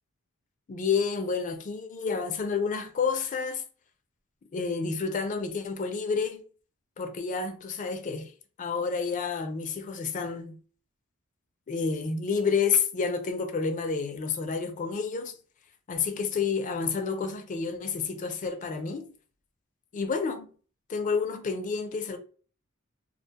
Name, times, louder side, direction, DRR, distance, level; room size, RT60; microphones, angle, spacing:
voice 1, 0.7-3.6 4.5-6.4 7.0-8.3 8.6-10.6 11.7-15.4 15.9-19.1 19.9-20.5 20.9-22.2, left 5 dB, 35° left, 0.4 m, -29 dB
2.4 x 2.2 x 2.7 m
head